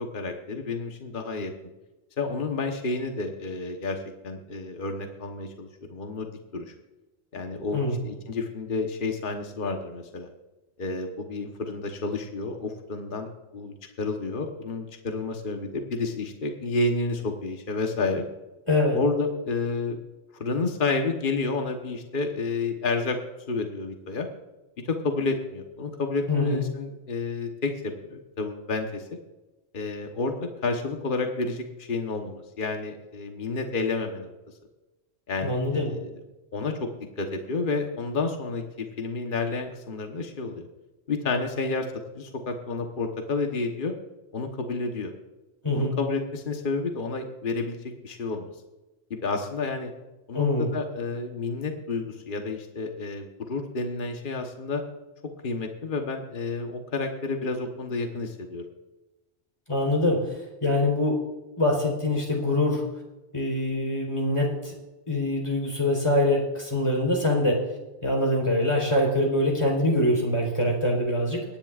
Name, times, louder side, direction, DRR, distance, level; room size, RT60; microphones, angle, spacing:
voice 1, 0.0-1.5 2.2-4.0 4.2-6.7 7.3-10.3 10.8-18.2 18.9-20.0 20.4-23.2 23.5-24.3 24.8-29.0 29.7-34.3 35.3-36.1 36.5-36.9 37.2-40.7 41.1-41.9 42.1-43.9 44.3-45.1 45.7-47.8 48.0-48.5 49.1-49.9 50.3-54.8 55.4-58.6, left 3 dB, 50° left, 4 dB, 1.3 m, -30 dB
voice 2, 18.7-19.0 26.3-26.6 35.4-35.9 45.6-46.0 50.3-50.7 59.7-61.1 61.6-62.8 63.3-64.7 65.1-67.6 68.0-71.4, left 1 dB, 25° left, -1 dB, 3.8 m, -24 dB
22.5 x 10.5 x 2.5 m, 1.1 s
omnidirectional pair, 1.1 m